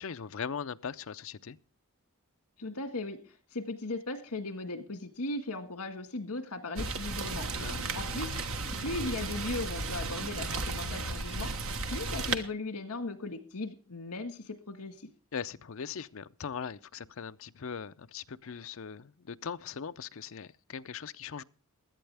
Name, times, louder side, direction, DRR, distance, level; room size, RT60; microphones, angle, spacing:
voice 1, 0.0-1.6 7.6-7.9 15.3-21.4, left 6 dB, 60° left, 0.5 m, -40 dB
voice 2, 2.6-8.4 8.8-11.5 11.9-15.1, left 2 dB, 85° left, 1.7 m, -37 dB
Rain, 6.8-12.4, right 3 dB, 65° right, 1.3 m, -34 dB
16.5 x 11.5 x 3.4 m
head